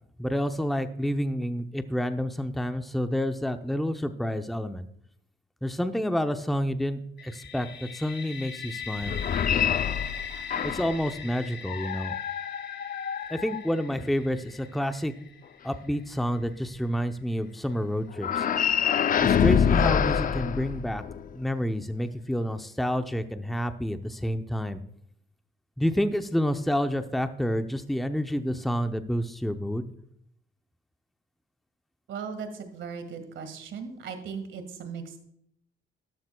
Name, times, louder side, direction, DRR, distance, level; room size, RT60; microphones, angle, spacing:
voice 1, 0.2-4.9 5.6-9.2 10.6-12.1 13.3-15.1 15.6-18.5 19.2-21.0 21.3-24.8 25.8-29.9, equal, ahead, 8 dB, 0.7 m, -29 dB
sound 1, 7.2-16.9, left 7 dB, 60° left, 2.4 m, -41 dB
sound 2, 9.0-11.0 11.7-14.1 18.2-21.3, left 8 dB, 45° left, 0.5 m, -26 dB
voice 2, 32.1-35.2, right 6 dB, 70° right, 7 dB, 1.9 m, -38 dB
13.0 x 11.5 x 2.3 m, 0.72 s
cardioid pair, 90°, 20 cm